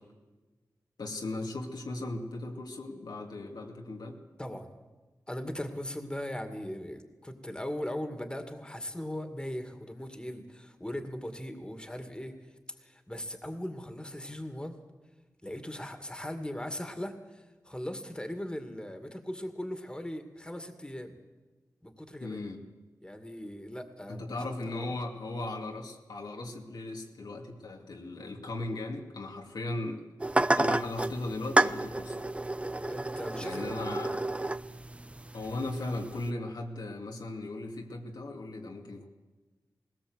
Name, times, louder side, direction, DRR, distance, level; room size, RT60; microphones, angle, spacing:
voice 1, 1.0-4.2 22.2-22.7 24.1-30.0 30.6-32.3 33.4-34.2 35.3-39.1, left 2 dB, 85° left, 1 dB, 2.5 m, -37 dB
voice 2, 5.3-12.3 12.8-14.7 15.4-21.2 21.8-22.5 23.0-24.9 32.9-33.7, left 1 dB, 15° left, 7 dB, 2.2 m, -39 dB
sound 1, 30.2-36.3, right 2 dB, 15° right, 0.6 m, -30 dB
19.5 x 18.0 x 8.0 m, 1.3 s
cardioid pair, 60°, 7 cm